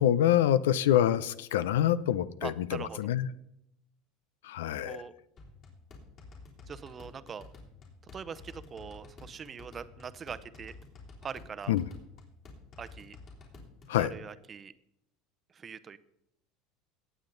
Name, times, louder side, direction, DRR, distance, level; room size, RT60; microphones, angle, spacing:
voice 1, 0.0-3.3 4.4-5.0 11.7-11.9 13.9-14.1, left 11 dB, 90° left, 17 dB, 0.5 m, -26 dB
voice 2, 2.4-3.1 4.8-5.1 6.7-7.5 8.1-10.8 11.2-11.7 12.8-13.2 13.9-14.7 15.5-16.0, right 6 dB, 30° right, 14 dB, 0.7 m, -42 dB
sound 1, 5.4-14.1, left 3 dB, 45° left, 3.4 m, -51 dB
18.0 x 7.2 x 3.9 m, 0.78 s
supercardioid pair, 115°, 0 cm